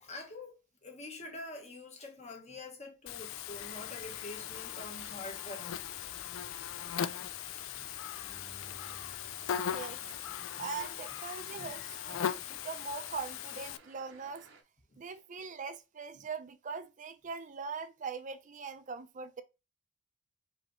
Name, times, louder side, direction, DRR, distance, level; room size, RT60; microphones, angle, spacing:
voice 1, 0.0-5.7 7.4-7.5 7.7-7.9 8.2-8.3 9.0-9.3 10.5-10.7 11.6-11.8 12.1-12.4 14.9-15.0, left 2 dB, 35° left, 1.2 m, -46 dB
Buzz, 3.1-13.8, left 9 dB, 90° left, 0.3 m, -39 dB
sound 1, 3.6-14.6, right 4 dB, 80° right, 0.8 m, -58 dB
Bowed string instrument, 8.2-11.3 11.8-11.9, right 2 dB, 65° left, 1.4 m, -59 dB
voice 2, 9.7-10.0 10.6-14.5 15.0-19.4, right 5 dB, 40° right, 0.4 m, -41 dB
5.1 x 2.9 x 3.1 m
head